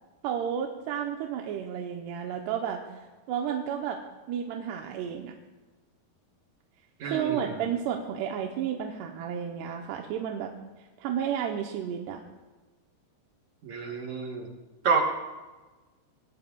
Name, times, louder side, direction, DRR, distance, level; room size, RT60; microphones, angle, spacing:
voice 1, 0.2-2.8 3.3-4.0 4.3-5.3 7.0-10.5 11.0-12.2, right 8 dB, 85° right, 2 dB, 2.9 m, -32 dB
voice 2, 7.0-7.7 13.6-14.5 14.8-15.0, right 5 dB, 65° right, 1 dB, 2.0 m, -29 dB
25.0 x 20.0 x 2.4 m, 1.2 s
omnidirectional pair, 4.8 m